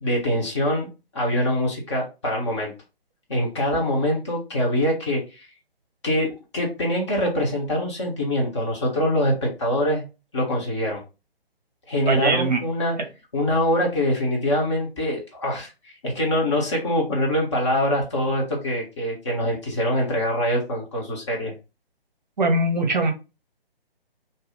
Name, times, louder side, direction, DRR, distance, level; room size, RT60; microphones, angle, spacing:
voice 1, 0.0-0.9 1.1-2.7 3.3-5.5 6.0-10.0 10.3-11.0 11.9-13.0 13.3-21.5, left 1 dB, 30° left, 0.9 m, -24 dB
voice 2, 12.1-12.6 22.4-23.1, right 2 dB, 45° right, 0.7 m, -21 dB
2.7 x 2.3 x 3.5 m
figure-of-eight pair, 140°, 30 cm